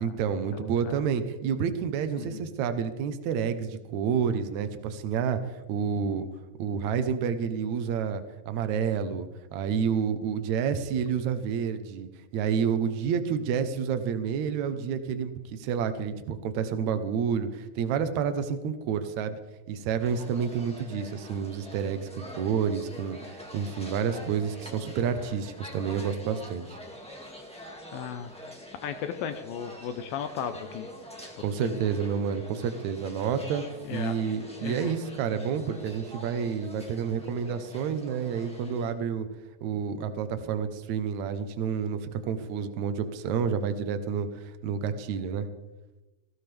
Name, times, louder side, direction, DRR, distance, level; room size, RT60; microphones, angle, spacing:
voice 1, 0.0-5.4 5.7-6.3 6.6-19.4 19.7-26.8 31.2-33.6 33.9-39.3 39.6-45.5, right 7 dB, 70° right, 9 dB, 1.8 m, -29 dB
voice 2, 0.5-1.0 2.2-2.5 27.9-28.3 28.8-30.9 31.4-32.0 33.8-34.2 34.6-35.0, left 8 dB, 75° left, 8 dB, 2.3 m, -36 dB
sound 1, 20.0-38.9, equal, 10° left, 0.4 m, -45 dB
19.0 x 17.0 x 3.5 m, 1.1 s
omnidirectional pair, 4.6 m